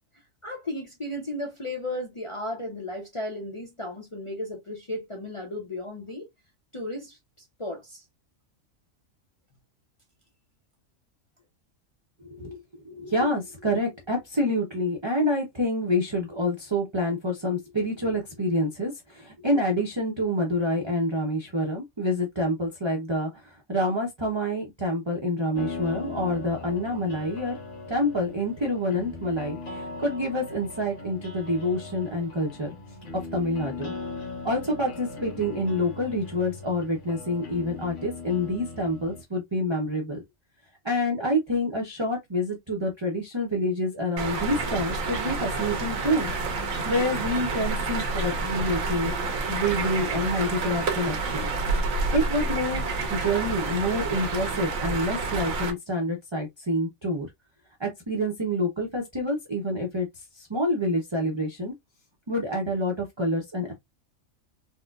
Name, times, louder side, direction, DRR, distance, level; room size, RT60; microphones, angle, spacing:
voice 1, 0.4-6.3 6.7-7.2 7.6-8.0, left 1 dB, 30° left, 0.6 m, -34 dB
voice 2, 12.8-27.6 27.9-32.7 33.3-33.9 34.4-40.2 40.8-46.3 46.9-51.5 52.1-52.8 53.1-57.3 57.8-60.1 60.4-61.7 62.3-63.7, left 1 dB, 25° right, 0.6 m, -27 dB
sound 1, 25.6-39.2, left 3 dB, 65° left, 1.3 m, -39 dB
sound 2, 44.2-55.7, right 3 dB, 80° right, 1.2 m, -29 dB
4.2 x 2.2 x 2.3 m
omnidirectional pair, 1.4 m